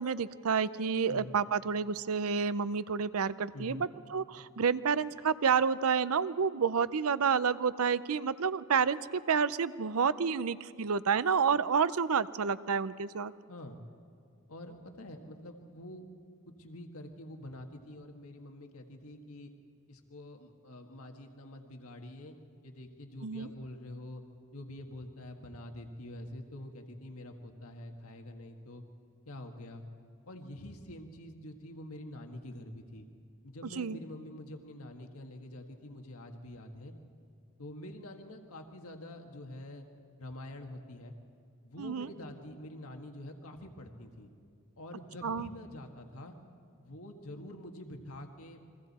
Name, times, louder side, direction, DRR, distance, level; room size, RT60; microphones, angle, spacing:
voice 1, 0.0-13.3 23.2-23.5 33.8-34.0 41.8-42.1 45.2-45.5, right 6 dB, 85° right, 16 dB, 0.6 m, -29 dB
voice 2, 3.5-3.9 13.5-13.8 14.5-16.1 16.5-19.5 19.9-22.3 22.6-24.2 24.5-28.8 29.3-29.8 30.2-33.1 33.4-36.9 37.6-39.9 40.2-41.2 41.6-44.3 44.8-46.4 46.8-48.6, left 1 dB, 90° left, 4 dB, 1.7 m, -46 dB
29.5 x 23.0 x 4.2 m, 2.3 s
head